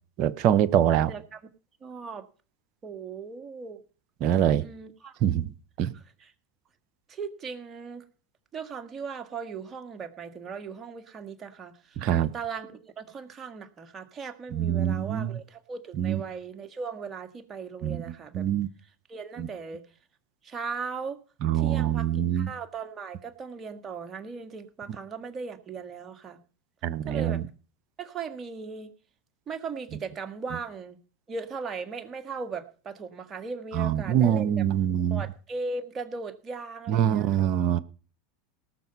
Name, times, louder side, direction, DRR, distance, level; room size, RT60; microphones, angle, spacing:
voice 1, 0.2-1.1 4.2-4.6 5.2-5.5 5.8-5.9 12.0-12.3 14.5-15.3 16.0-16.2 17.8-18.0 18.3-18.7 19.4-19.5 21.4-22.5 26.8-27.4 33.7-35.2 36.9-37.8, right 10 dB, 55° right, 0.9 m, -24 dB
voice 2, 1.1-1.4 1.8-2.3 2.8-3.8 4.6-5.2 5.9-6.3 7.1-8.0 8.5-18.5 19.1-19.8 20.4-21.2 21.5-26.4 27.1-27.4 28.0-28.9 29.5-31.0 31.3-34.6 35.1-37.5, right 5 dB, 30° right, 1.9 m, -38 dB
18.5 x 6.8 x 5.5 m
hypercardioid pair, 90°, 0 cm